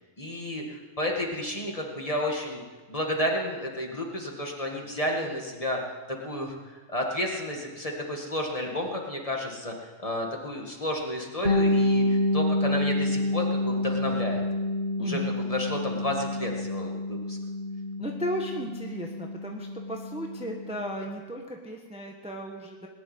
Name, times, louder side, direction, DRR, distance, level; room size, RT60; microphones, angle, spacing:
voice 1, 0.2-2.6 2.9-5.8 6.2-6.6 6.9-14.4 15.0-17.4, left 1 dB, 25° left, 0 dB, 2.0 m, -31 dB
Bass guitar, 11.4-21.1, left 1 dB, 40° left, 2.1 m, -28 dB
voice 2, 15.0-15.3 18.0-22.9, equal, 5° right, 1 dB, 1.2 m, -35 dB
20.0 x 6.9 x 9.7 m, 1.3 s
omnidirectional pair, 1.5 m